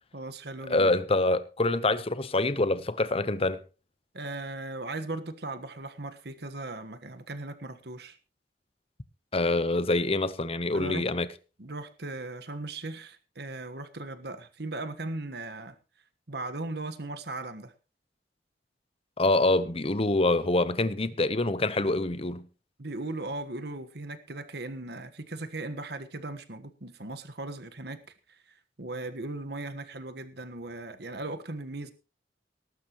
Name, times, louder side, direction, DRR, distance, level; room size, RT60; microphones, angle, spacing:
voice 1, 0.1-0.9 4.1-8.2 10.7-11.0 11.6-15.7 16.3-17.7 22.8-28.0 28.3-28.4 28.8-31.9, right 2 dB, 65° right, 1.4 m, -38 dB
voice 2, 0.7-3.6 9.3-11.3 19.2-22.5, left 2 dB, 35° left, 0.9 m, -25 dB
19.5 x 12.0 x 3.1 m
head